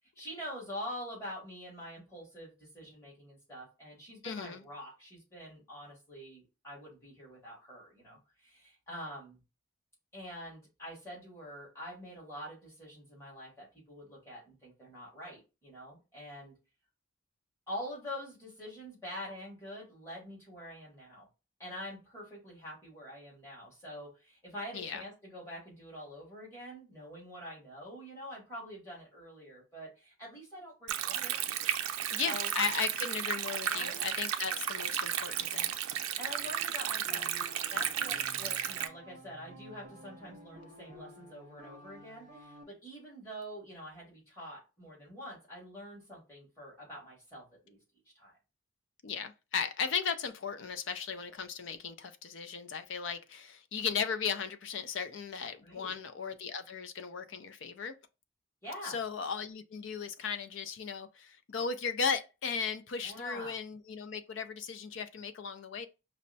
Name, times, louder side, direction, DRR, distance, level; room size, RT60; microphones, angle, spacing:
voice 1, 0.2-9.4 10.1-16.5 17.7-21.3 21.6-31.4 32.2-32.5 33.7-34.0 36.2-37.3 37.7-47.8 48.1-48.3 55.6-56.0 58.6-59.0 63.0-63.5, equal, 15° left, 1.9 m, -45 dB
voice 2, 4.2-4.6 24.7-25.0 32.1-35.7 49.0-57.9 58.8-65.9, left 6 dB, 60° left, 0.4 m, -36 dB
Stream, 30.9-38.9, right 9 dB, 85° right, 0.4 m, -34 dB
sound 1, 37.0-42.6, equal, 35° right, 0.6 m, -52 dB
5.3 x 2.1 x 2.7 m
head